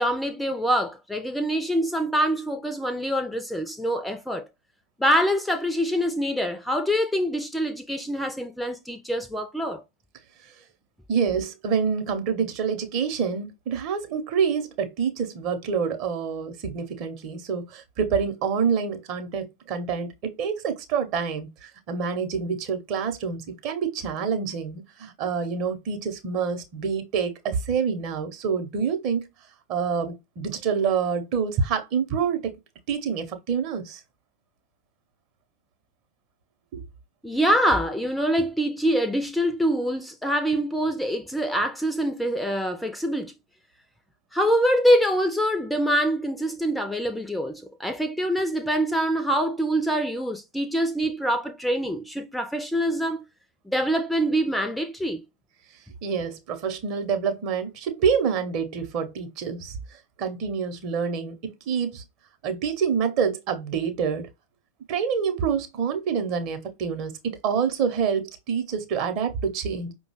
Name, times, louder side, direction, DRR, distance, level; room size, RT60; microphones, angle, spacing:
voice 1, 0.0-4.4 5.0-9.8 37.2-43.3 44.3-53.2 53.7-55.2, equal, 5° left, 0.5 m, -25 dB
voice 2, 11.1-29.2 29.7-32.5 32.9-34.0 36.7-36.8 56.0-59.8 60.2-62.0 62.4-64.3 64.9-69.9, right 6 dB, 40° right, 0.8 m, -27 dB
5.2 x 2.2 x 3.1 m
figure-of-eight pair, 90°, 0 cm